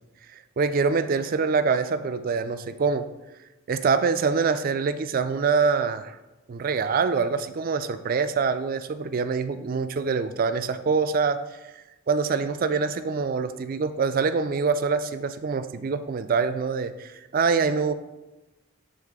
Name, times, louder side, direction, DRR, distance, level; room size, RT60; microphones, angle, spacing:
voice 1, 0.3-3.0 3.7-6.2 6.5-17.9, right 5 dB, 45° right, 11 dB, 0.3 m, -25 dB
8.1 x 3.8 x 3.6 m, 1.1 s
head